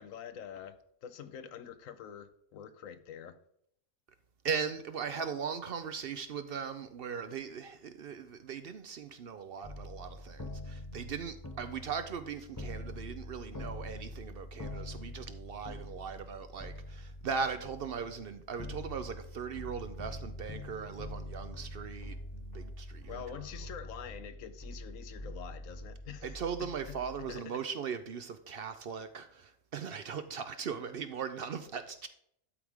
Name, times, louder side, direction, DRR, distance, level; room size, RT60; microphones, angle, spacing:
voice 1, 0.0-3.4 14.7-15.0 23.1-26.7 27.2-27.6, left 8 dB, 75° left, 1.0 m, -46 dB
voice 2, 4.4-23.2 26.2-32.1, right 6 dB, 60° right, 0.6 m, -39 dB
sound 1, 9.6-27.4, left 1 dB, 20° left, 0.7 m, -45 dB
12.0 x 4.8 x 3.6 m
omnidirectional pair, 1.5 m